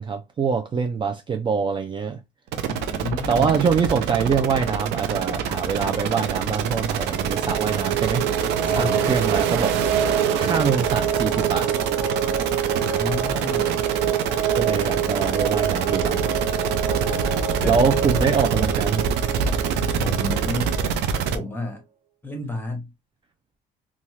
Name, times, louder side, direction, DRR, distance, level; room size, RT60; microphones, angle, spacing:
voice 1, 0.0-2.2 3.3-9.8 10.4-11.7 14.6-16.3 17.0-19.1, right 6 dB, 30° right, 0.4 m, -24 dB
sound 1, 2.5-21.4, right 7 dB, 85° right, 0.5 m, -26 dB
voice 2, 2.7-3.6 8.6-9.2 12.8-13.8 17.5-17.8 20.0-20.8 21.2-21.8 22.2-22.9, left 2 dB, 10° left, 1.0 m, -31 dB
sound 2, 7.1-21.4, right 8 dB, 50° right, 1.3 m, -27 dB
2.7 x 2.4 x 3.1 m
cardioid pair, 110°, 17 cm